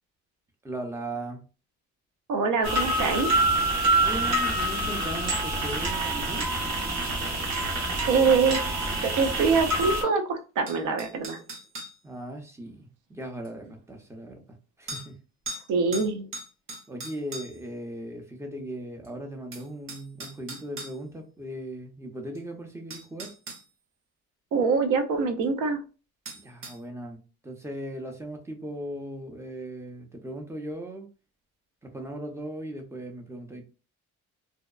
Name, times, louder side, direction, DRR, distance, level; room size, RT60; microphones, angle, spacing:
voice 1, 0.6-1.4 4.0-6.5 12.0-14.4 14.8-15.2 16.9-23.3 26.3-31.1 31.8-33.7, right 1 dB, 10° right, 3 dB, 0.6 m, -38 dB
voice 2, 2.3-3.3 8.1-8.6 9.0-11.4 15.5-16.3 24.5-25.8, right 5 dB, 80° right, 6 dB, 0.6 m, -24 dB
sound 1, 2.6-10.0, right 2 dB, 65° right, 1.0 m, -26 dB
sound 2, 10.7-12.0 13.4-13.5 14.9-15.1 15.5-15.7 15.9-17.7 19.0-19.1 19.5-21.0 22.3-22.4 22.9-23.6 26.3-26.8, right 2 dB, 45° right, 0.9 m, -39 dB
2.8 x 2.1 x 2.3 m, 0.34 s
cardioid pair, 90°, 30 cm